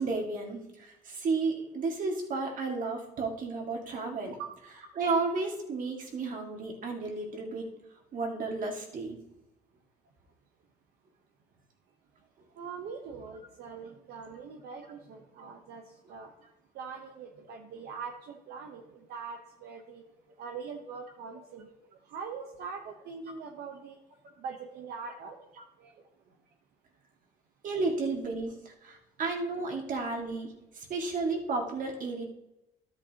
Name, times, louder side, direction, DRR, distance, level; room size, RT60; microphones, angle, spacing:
voice 1, 0.0-4.3 5.0-7.7 8.1-9.2 27.6-32.2, right 3 dB, 50° right, 2 dB, 2.0 m, -32 dB
voice 2, 12.6-15.8 16.1-16.3 16.7-20.0 20.4-21.7 22.1-24.0 24.4-25.4 25.8-25.9, right 5 dB, 70° right, 2 dB, 1.0 m, -42 dB
12.5 x 7.9 x 2.9 m, 0.90 s
cardioid pair, 110°, 17 cm